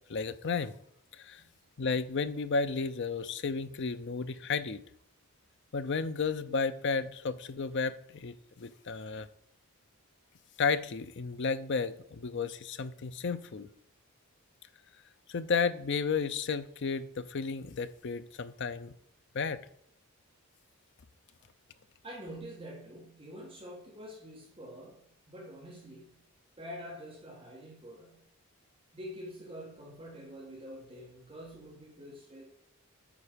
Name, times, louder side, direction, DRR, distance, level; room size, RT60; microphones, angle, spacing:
voice 1, 0.1-0.7 1.2-1.4 1.8-4.8 5.7-9.3 10.6-13.7 15.3-18.9 19.3-19.6, left 5 dB, 50° left, 13 dB, 0.5 m, -33 dB
voice 2, 22.0-26.2 26.6-28.2 28.9-32.4, equal, 25° right, -3 dB, 1.7 m, -46 dB
8.7 x 4.8 x 5.1 m, 0.71 s
head